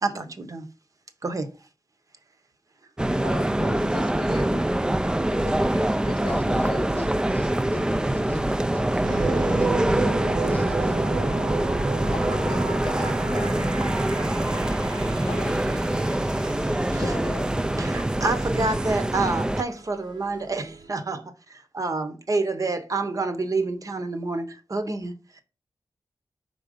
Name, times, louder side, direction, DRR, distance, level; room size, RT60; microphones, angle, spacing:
voice 1, 0.0-0.7 1.2-1.5 16.9-17.2 17.8-25.4, right 3 dB, 45° right, 0.8 m, -28 dB
sound 1, 3.0-19.6, right 1 dB, 10° right, 0.3 m, -24 dB
voice 2, 3.2-4.7 5.3-6.9 12.1-14.0 15.3-15.6 17.0-17.5, left 6 dB, 70° left, 0.5 m, -38 dB
voice 3, 6.3-11.0, left 1 dB, 20° left, 0.7 m, -38 dB
sound 2, 9.0-20.9, right 4 dB, 70° right, 1.0 m, -35 dB
5.7 x 3.8 x 5.0 m
wide cardioid pair, 125°, 8 cm